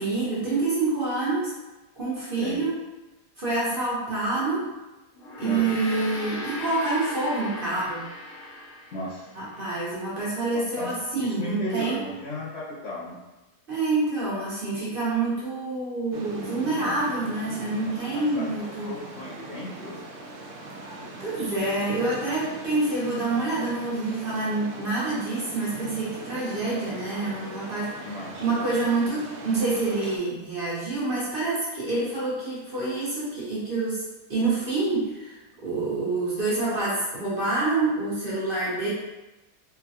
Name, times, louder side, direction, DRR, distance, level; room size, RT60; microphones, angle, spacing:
voice 1, 0.0-1.5 1.9-2.8 3.4-4.7 5.4-8.0 9.4-12.0 13.7-19.0 21.2-28.1 28.4-34.0 34.3-35.3 35.6-38.9, right 3 dB, 40° right, -9 dB, 0.9 m, -27 dB
voice 2, 2.3-2.6 5.4-6.1 8.9-9.4 10.5-13.2 18.1-20.0 26.7-27.2 28.0-28.4, left 1 dB, 80° left, -6 dB, 0.5 m, -35 dB
Gong, 5.1-9.8, left 1 dB, 60° left, 0.9 m, -38 dB
sound 1, 16.1-30.2, right 2 dB, 70° right, 0.7 m, -40 dB
3.8 x 2.2 x 2.7 m, 1.1 s
omnidirectional pair, 1.8 m